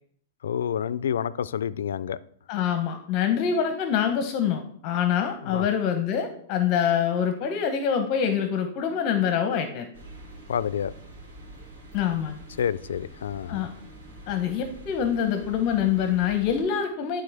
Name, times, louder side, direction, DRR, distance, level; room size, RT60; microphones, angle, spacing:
voice 1, 0.4-2.2 5.4-5.7 10.5-10.9 12.6-13.7, left 8 dB, 90° left, 17 dB, 0.3 m, -28 dB
voice 2, 2.5-9.9 11.9-12.4 13.5-13.7 14.3-17.2, left 8 dB, 40° left, 7 dB, 0.8 m, -25 dB
sound 1, 9.9-16.6, right 1 dB, 75° right, 2.3 m, -45 dB
11.0 x 3.8 x 3.4 m, 0.64 s
hypercardioid pair, 145°, 0 cm